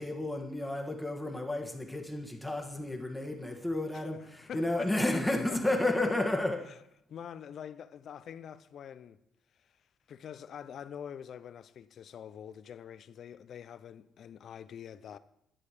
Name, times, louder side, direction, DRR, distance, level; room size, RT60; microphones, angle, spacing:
voice 1, 0.0-6.7, left 1 dB, 5° left, 1.5 m, -32 dB
voice 2, 4.5-5.2 5.5-5.6 7.1-9.2 10.1-15.2, left 8 dB, 65° left, 0.6 m, -45 dB
11.0 x 10.5 x 4.9 m
cardioid pair, 90°, 0 cm